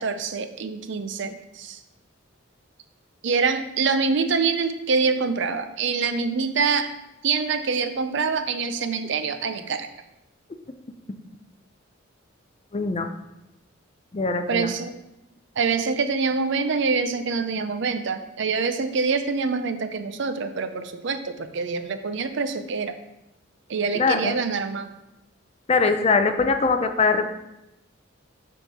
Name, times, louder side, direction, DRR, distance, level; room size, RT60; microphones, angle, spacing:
voice 1, 0.0-1.8 3.2-6.9 7.2-9.9 14.5-14.9 15.6-23.0 23.7-24.9, right 5 dB, 60° right, 9 dB, 0.5 m, -25 dB
voice 2, 12.7-13.1 14.1-14.7 23.9-24.4 25.7-27.3, left 4 dB, 30° left, 8 dB, 0.4 m, -22 dB
6.8 x 3.6 x 5.9 m, 0.91 s
head